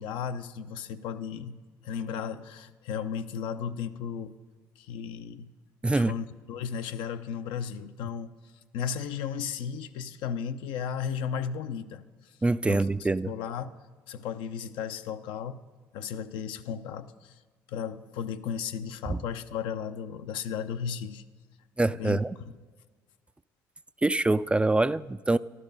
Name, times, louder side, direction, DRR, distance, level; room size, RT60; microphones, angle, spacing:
voice 1, 0.0-4.4 4.8-5.5 5.9-8.3 8.7-12.0 12.7-13.8 14.1-15.6 15.9-17.4 17.7-21.2 21.9-22.2, left 7 dB, 75° left, 9 dB, 0.6 m, -35 dB
voice 2, 12.4-13.3 19.1-19.2 21.8-22.4 24.0-25.4, right 2 dB, 15° right, 15 dB, 0.3 m, -25 dB
12.5 x 12.0 x 5.3 m, 1.5 s
supercardioid pair, 65°, 8 cm